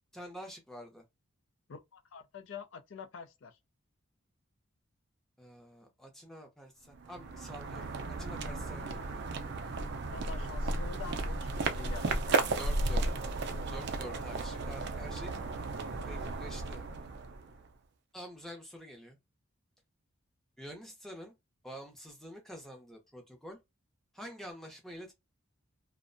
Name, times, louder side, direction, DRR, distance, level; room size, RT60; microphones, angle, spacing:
voice 1, 0.1-1.0 5.4-7.9 8.2-9.3 12.6-13.0 13.7-15.3 16.0-16.8 18.1-19.2 20.6-21.3 21.6-23.6 24.1-25.1, equal, ahead, 0.6 m, -47 dB
voice 2, 1.7-3.6 10.1-12.4, left 5 dB, 60° left, 0.4 m, -46 dB
sound 1, 6.9-17.7, right 2 dB, 55° right, 0.4 m, -34 dB
2.5 x 2.1 x 2.5 m
head